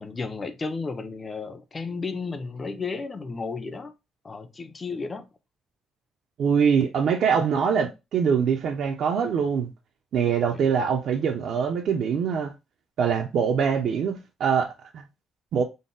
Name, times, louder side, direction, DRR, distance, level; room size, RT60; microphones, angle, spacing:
voice 1, 0.0-3.9 4.2-5.3, left 4 dB, 20° left, 0.4 m, -33 dB
voice 2, 6.4-9.7 10.1-12.5 13.0-15.0 15.5-15.6, right 6 dB, 55° right, 0.4 m, -23 dB
3.9 x 2.0 x 3.7 m
cardioid pair, 170°, 0 cm